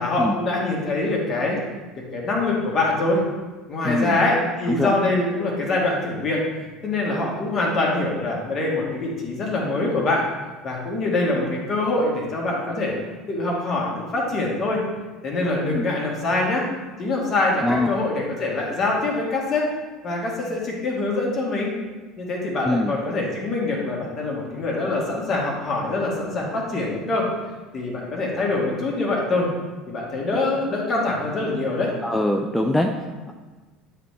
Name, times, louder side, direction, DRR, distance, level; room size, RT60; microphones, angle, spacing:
voice 1, 0.0-1.6 2.1-3.2 3.7-6.4 6.8-10.2 10.6-12.9 13.3-14.8 15.2-16.6 17.0-19.7 20.0-21.7 22.2-27.3 27.7-29.5 29.9-31.9, left 2 dB, 40° left, -2 dB, 1.7 m, -24 dB
voice 2, 3.8-4.2 4.7-4.9 15.7-15.8 17.6-17.9 22.6-22.9 32.0-32.9, left 1 dB, 5° left, 3 dB, 0.4 m, -22 dB
8.7 x 3.5 x 3.2 m, 1.3 s
hypercardioid pair, 70°, 0 cm